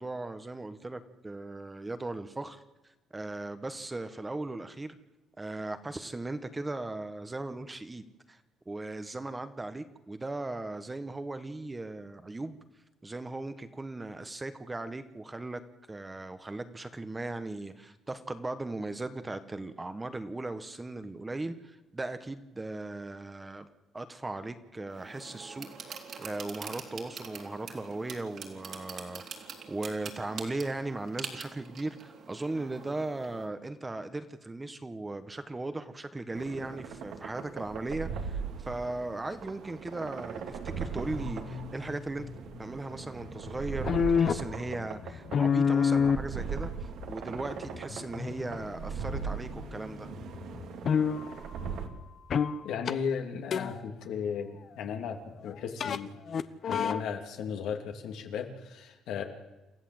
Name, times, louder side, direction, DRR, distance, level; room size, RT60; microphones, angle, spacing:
voice 1, 0.0-2.6 3.1-5.0 5.4-8.4 8.7-12.6 13.0-15.6 15.9-23.7 23.9-25.9 26.2-42.3 42.6-43.9 44.2-50.1, right 2 dB, 15° right, 10 dB, 1.3 m, -38 dB
sound 1, 24.9-33.5, right 6 dB, 55° right, 3.4 m, -45 dB
sound 2, 36.3-51.9, right 6 dB, 70° right, 2.5 m, -39 dB
sound 3, 41.1-42.4 43.2-49.8 50.1-51.3 52.3-52.6 52.9-53.0 53.5-53.8 55.8-56.0 56.3-57.0, left 6 dB, 50° left, 1.0 m, -29 dB
voice 2, 52.6-56.1 56.6-59.2, left 7 dB, 80° left, 4 dB, 2.9 m, -35 dB
28.0 x 14.5 x 7.9 m, 1.1 s
cardioid pair, 115°, 0 cm